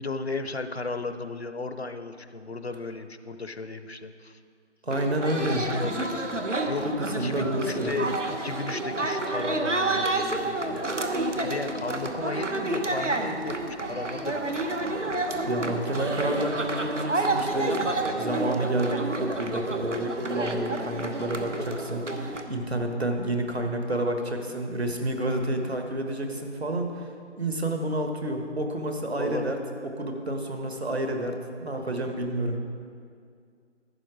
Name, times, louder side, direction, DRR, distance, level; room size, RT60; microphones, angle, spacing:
voice 1, 0.0-4.4 5.3-6.4 6.7-6.9 7.2-11.2 11.4-14.6 29.2-29.5 30.9-31.0, left 3 dB, 60° left, 10 dB, 0.7 m, -35 dB
voice 2, 4.8-5.6 6.8-7.9 15.5-27.0 27.4-29.6 30.0-32.6, right 1 dB, 60° right, 4 dB, 1.5 m, -29 dB
sound 1, 4.9-22.4, right 2 dB, 80° right, 1.2 m, -29 dB
12.0 x 9.2 x 4.8 m, 2.2 s
figure-of-eight pair, 165°, 36 cm